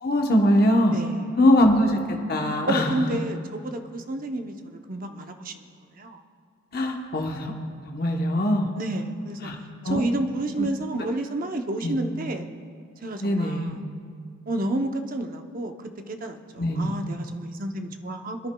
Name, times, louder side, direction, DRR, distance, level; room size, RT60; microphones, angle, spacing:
voice 1, 0.0-1.0 1.4-3.2 6.7-7.5 7.8-8.7 9.4-9.6 9.8-10.0 10.6-10.7 11.8-11.9 13.2-13.8 16.6-16.9, left 1 dB, 45° left, 1 dB, 1.0 m, -22 dB
voice 2, 2.7-5.6 5.9-6.2 8.8-9.5 9.8-12.5 13.0-13.8 14.5-15.7 16.1-18.5, right 1 dB, 40° right, 5 dB, 0.7 m, -30 dB
26.0 x 10.5 x 2.3 m, 2.3 s
head